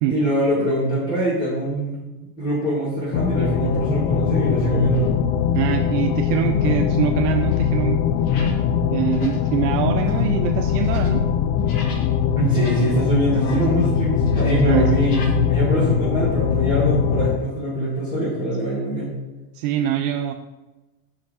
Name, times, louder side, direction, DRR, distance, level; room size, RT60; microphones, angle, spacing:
voice 1, 0.1-2.1 2.4-5.1 12.4-19.1, right 1 dB, 15° left, -10 dB, 2.0 m, -23 dB
sound 1, 3.1-17.4, left 8 dB, 80° left, 0.5 m, -21 dB
sound 2, 4.1-4.2 4.8-5.3 5.6-12.2 12.4-13.9 14.2-15.4, left 3 dB, 50° left, 1.3 m, -33 dB
voice 2, 5.5-8.0 8.9-11.2 14.7-14.9 19.6-20.3, right 11 dB, 75° right, 5 dB, 0.6 m, -23 dB
5.5 x 4.8 x 4.9 m, 1.1 s
cardioid pair, 175°, 48 cm